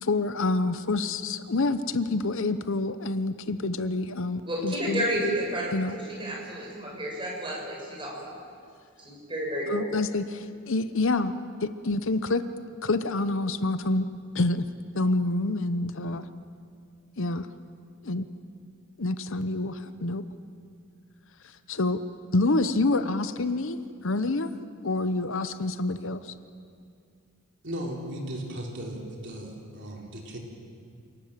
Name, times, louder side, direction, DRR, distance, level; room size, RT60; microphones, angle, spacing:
voice 1, 0.0-5.1 5.7-6.0 9.7-11.3 11.6-12.4 12.8-14.1 14.3-14.6 14.9-16.3 17.2-17.5 18.0-18.3 19.0-20.2 21.7-22.0 22.3-23.8 24.0-24.5 24.8-26.3, left 2 dB, 60° left, 12 dB, 0.9 m, -27 dB
voice 2, 4.5-8.2 9.0-9.9, right 1 dB, 25° right, -2 dB, 6.6 m, -31 dB
voice 3, 27.6-30.4, right 1 dB, 55° right, 0 dB, 3.6 m, -36 dB
28.0 x 19.0 x 7.4 m, 2.3 s
head